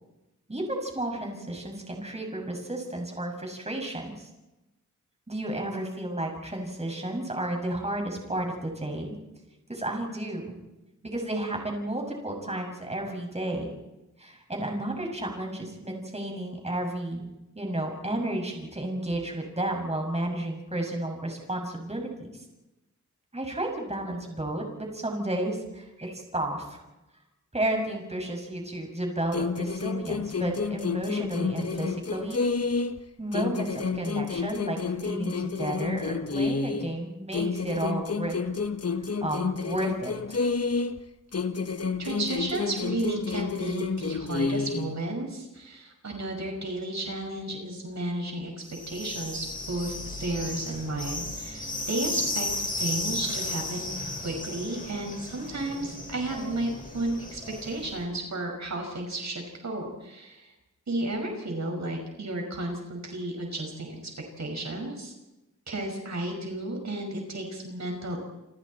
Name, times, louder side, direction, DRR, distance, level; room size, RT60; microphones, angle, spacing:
voice 1, 0.5-4.3 5.3-9.2 9.7-10.6 11.0-13.8 14.2-17.2 17.5-22.3 23.3-26.8 27.5-32.4 33.2-38.3 39.0-40.4, right 1 dB, 20° right, 1 dB, 6.4 m, -32 dB
sound 1, 29.3-33.0 33.3-36.9 37.3-41.0 41.3-44.9, left 4 dB, 50° left, 1.4 m, -30 dB
voice 2, 42.0-48.5 48.9-52.5 52.8-60.5 60.9-64.0 64.4-65.1 65.7-68.2, right 1 dB, 60° right, 2 dB, 5.8 m, -33 dB
sound 2, 48.7-58.0, left 2 dB, 25° left, 5.5 m, -35 dB
29.5 x 27.0 x 4.4 m, 1.0 s
wide cardioid pair, 90°, 31 cm